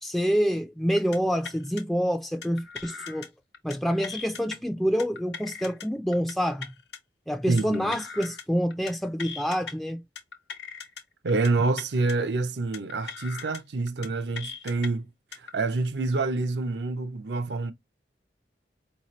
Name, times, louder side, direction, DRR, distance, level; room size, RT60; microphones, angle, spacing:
voice 1, 0.0-3.3 3.6-6.7 7.3-10.0, equal, ahead, 0.4 m, -27 dB
sound 1, 1.0-1.2 1.4-1.8 2.4-3.3 3.5-3.8 4.0-4.6 5.0-5.9 6.1-6.3 6.6-7.0 7.6-8.4 8.7-8.9 9.2-9.7 10.2-11.0 11.3-11.5 11.8-12.1 12.7-13.6 13.9-14.1 14.4-14.9 15.3-15.5, left 5 dB, 65° left, 0.9 m, -39 dB
voice 2, 7.5-8.0 11.2-15.1 15.4-17.7, right 3 dB, 65° right, 0.5 m, -27 dB
4.8 x 2.7 x 3.0 m
head